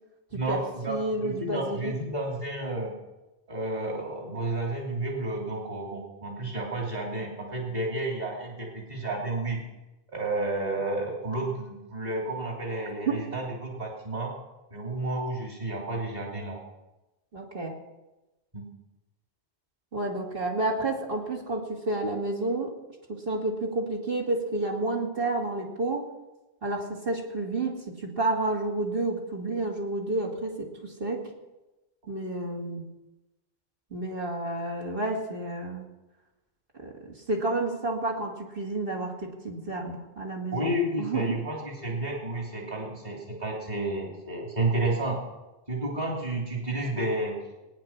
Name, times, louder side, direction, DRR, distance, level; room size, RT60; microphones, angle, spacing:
voice 1, 0.3-1.0 1.2-2.9 3.5-9.6 10.1-14.3 14.7-16.6 18.5-18.6 40.5-45.2 45.7-47.4, right 2 dB, 35° right, -1 dB, 3.3 m, -31 dB
voice 2, 0.9-1.9 17.3-17.8 19.9-22.7 23.1-26.1 26.6-31.3 32.1-32.8 33.9-35.9 36.8-40.7 41.0-41.4, right 2 dB, 50° right, -1 dB, 2.8 m, -30 dB
19.0 x 9.9 x 6.0 m, 1.0 s
omnidirectional pair, 1.2 m